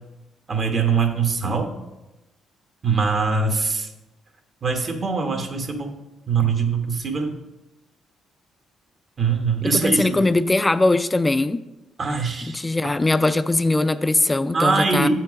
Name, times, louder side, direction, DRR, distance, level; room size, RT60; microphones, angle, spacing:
voice 1, 0.5-1.7 2.8-3.9 4.6-5.9 6.3-7.4 9.2-10.1 12.0-12.9 14.5-15.1, right 5 dB, 45° right, 4 dB, 1.1 m, -22 dB
voice 2, 9.7-11.6 12.5-15.1, left 2 dB, 15° left, 13 dB, 0.3 m, -20 dB
7.3 x 4.5 x 4.9 m, 0.99 s
cardioid pair, 90°, 0 cm